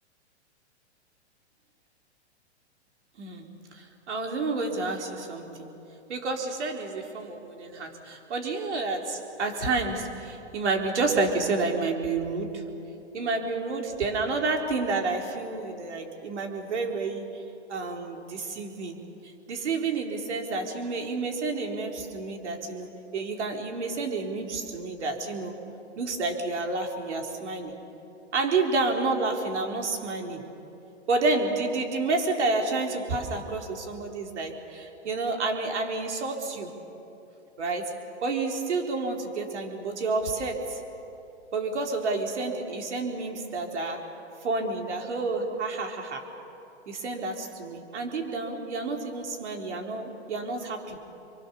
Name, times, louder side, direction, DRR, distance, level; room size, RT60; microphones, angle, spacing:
voice 1, 3.2-5.7 6.1-12.7 13.1-17.4 17.7-19.0 19.5-25.5 26.0-27.8 28.3-30.4 31.1-36.7 37.6-37.9 38.2-40.8 41.5-44.1 44.4-46.3 46.9-51.0, right 3 dB, 80° right, 2 dB, 3.9 m, -30 dB
29.0 x 23.5 x 7.0 m, 2.9 s
hypercardioid pair, 130°, 34 cm